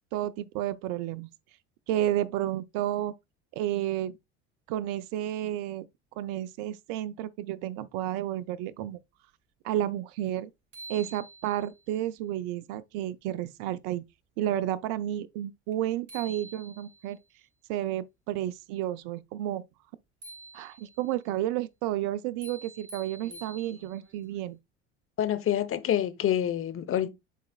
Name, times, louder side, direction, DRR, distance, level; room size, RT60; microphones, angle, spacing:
voice 1, 0.1-1.3 1.9-3.1 3.5-4.2 4.7-5.9 6.2-9.0 9.6-10.5 10.9-14.0 14.4-17.2 17.7-19.6 20.5-24.6, right 12 dB, 65° right, 0.6 m, -31 dB
sound 1, 10.3-10.4 10.7-11.8 15.7-15.8 16.1-17.1 20.2-21.1 22.4-24.1, right 2 dB, 35° right, 3.3 m, -47 dB
voice 2, 25.2-27.1, left 11 dB, 40° left, 0.8 m, -27 dB
10.0 x 4.1 x 2.3 m
hypercardioid pair, 75°, 35 cm